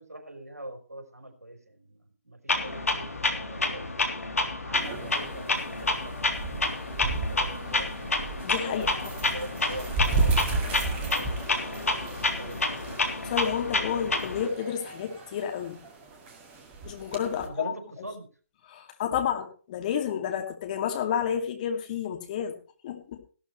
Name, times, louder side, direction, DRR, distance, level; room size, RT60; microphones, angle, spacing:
voice 1, 0.0-2.0 2.2-4.0 4.6-6.6 6.9-8.1 8.6-11.8 12.4-13.1 17.4-18.3, right 1 dB, 75° right, 5 dB, 4.6 m, -43 dB
Clock, 2.5-14.5, left 2 dB, 65° left, 3.3 m, -29 dB
sound 1, 4.7-17.5, right 3 dB, 20° right, 2.1 m, -34 dB
voice 2, 8.4-9.1 13.2-15.8 16.8-17.7 18.7-22.6 22.8-23.2, left 8 dB, 30° left, 4 dB, 2.5 m, -30 dB
16.0 x 12.5 x 3.2 m, 0.38 s
figure-of-eight pair, 140°, 8 cm